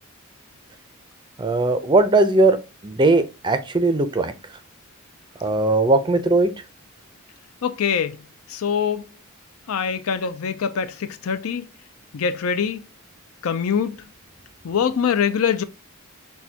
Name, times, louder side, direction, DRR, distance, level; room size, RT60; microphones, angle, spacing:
voice 1, 1.4-2.6 2.8-4.3 5.4-6.5, right 2 dB, 20° right, 0.5 m, -18 dB
voice 2, 7.6-8.2 8.5-9.0 9.7-11.6 12.1-12.8 13.4-14.0 14.6-15.6, left 7 dB, 70° left, 0.4 m, -23 dB
6.2 x 2.2 x 2.7 m
head